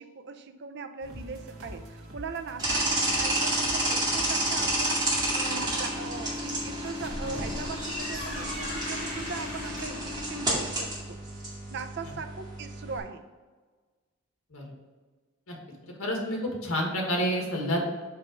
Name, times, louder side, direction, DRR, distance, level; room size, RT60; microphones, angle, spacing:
voice 1, 0.0-11.2 11.7-13.2, right 4 dB, 50° right, 7 dB, 0.5 m, -40 dB
sound 1, 1.0-11.3 11.7-11.8, equal, 80° right, 1.5 m, -48 dB
sound 2, 2.6-13.0, right 1 dB, 20° right, 2.1 m, -30 dB
sound 3, 6.8-10.0, left 1 dB, 45° left, 2.1 m, -38 dB
voice 2, 15.8-17.8, equal, 75° left, 0 dB, 1.7 m, -29 dB
5.6 x 5.1 x 5.0 m, 1.4 s
head